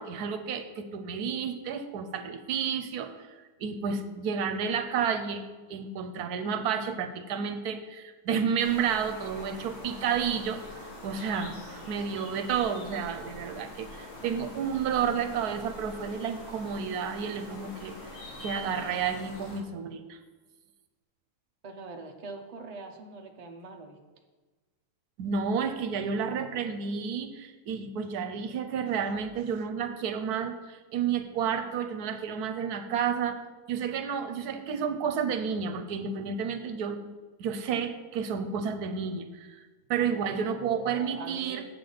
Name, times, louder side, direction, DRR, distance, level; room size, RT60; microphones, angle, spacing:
voice 1, 0.0-3.3 3.6-20.2 25.2-33.4 33.7-37.0 37.4-39.6 39.9-41.6, right 7 dB, 80° right, 8 dB, 1.2 m, -31 dB
sound 1, 8.6-19.6, left 1 dB, 70° left, 1.8 m, -44 dB
voice 2, 21.6-24.0 40.0-41.7, right 3 dB, 40° right, 3 dB, 0.6 m, -43 dB
7.9 x 6.9 x 3.9 m, 1.3 s
omnidirectional pair, 1.7 m